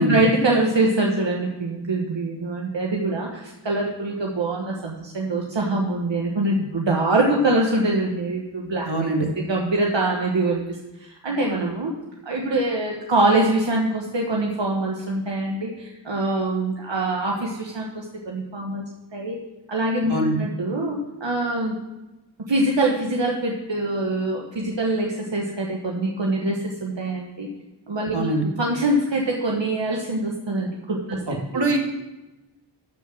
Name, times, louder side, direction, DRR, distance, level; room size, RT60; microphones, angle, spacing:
voice 1, 0.0-8.9 9.2-10.6 11.0-11.9 12.2-18.9 19.1-19.4 19.7-21.7 22.5-27.5 27.9-31.7, right 2 dB, 80° right, -1 dB, 1.2 m, -24 dB
voice 2, 8.9-9.3 20.1-20.3 28.1-28.4 31.3-31.8, right 1 dB, 60° right, 1 dB, 1.9 m, -23 dB
12.5 x 4.8 x 6.1 m, 1.0 s
wide cardioid pair, 50°, 44 cm